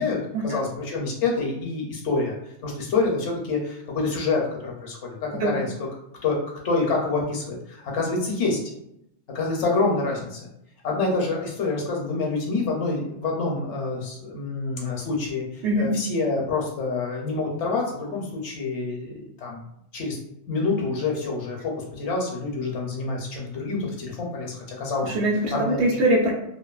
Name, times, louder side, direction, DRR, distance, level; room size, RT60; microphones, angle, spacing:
voice 1, 0.0-2.3 2.6-5.7 6.2-6.4 6.6-8.6 9.3-10.4 10.8-19.6 19.9-20.2 20.5-25.1 25.5-26.0, left 3 dB, 70° left, -1 dB, 0.9 m, -27 dB
voice 2, 25.0-26.3, right 1 dB, 65° right, -2 dB, 1.0 m, -22 dB
2.7 x 2.4 x 2.3 m, 0.78 s
omnidirectional pair, 1.3 m